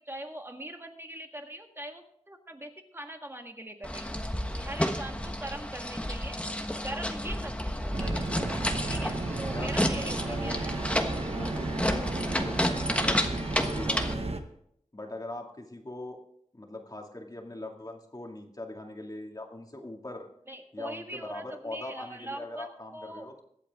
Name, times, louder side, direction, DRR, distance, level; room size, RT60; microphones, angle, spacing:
voice 1, 0.0-4.1 4.6-6.4 6.8-8.3 8.9-10.7 20.5-22.7 22.9-23.3, right 1 dB, 20° right, 4 dB, 1.8 m, -41 dB
sound 1, 3.8-14.1, left 1 dB, 10° left, 1.3 m, -31 dB
sound 2, 7.9-14.4, right 2 dB, 55° right, 1.2 m, -33 dB
voice 2, 10.0-10.9 11.2-14.3 14.9-16.2 16.5-20.3 20.7-23.4, left 2 dB, 30° left, 2 dB, 2.3 m, -41 dB
22.5 x 8.4 x 3.6 m, 0.72 s
wide cardioid pair, 75°, 12 cm